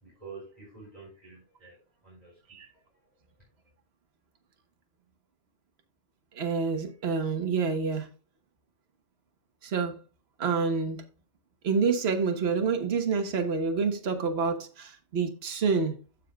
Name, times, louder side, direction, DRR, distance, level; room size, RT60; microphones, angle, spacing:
voice 1, 0.0-1.8 2.0-2.3, right 4 dB, 30° right, 4.4 m, -47 dB
voice 2, 6.4-8.1 9.6-9.9 10.4-11.0 11.6-15.9, right 5 dB, 60° right, 1.4 m, -27 dB
15.0 x 5.2 x 2.4 m
omnidirectional pair, 1.2 m